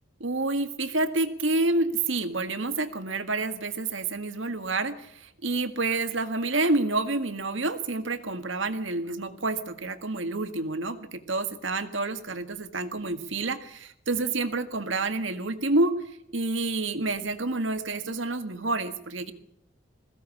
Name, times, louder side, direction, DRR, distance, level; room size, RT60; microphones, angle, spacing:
voice 1, 0.2-15.9 16.3-19.3, right 2 dB, 75° right, 9 dB, 1.9 m, -28 dB
21.5 x 16.0 x 8.5 m, 0.74 s
head